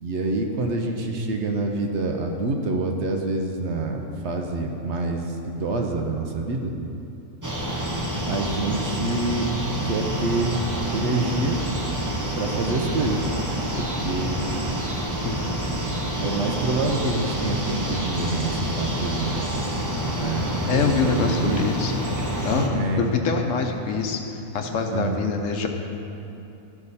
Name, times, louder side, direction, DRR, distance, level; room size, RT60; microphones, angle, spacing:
voice 1, 0.0-6.7 8.3-9.6 9.8-10.6 10.9-11.7 12.4-13.3 13.8-14.4 16.2-19.5 20.2-21.7 22.7-23.4 24.9-25.2, right 2 dB, 60° right, 3 dB, 0.9 m, -27 dB
sound 1, 7.4-22.7, equal, 20° right, 0.7 m, -28 dB
voice 2, 20.2-21.9 22.4-24.2 24.5-25.7, left 5 dB, 70° left, 4 dB, 1.0 m, -25 dB
13.5 x 5.0 x 4.1 m, 2.9 s
omnidirectional pair, 1.4 m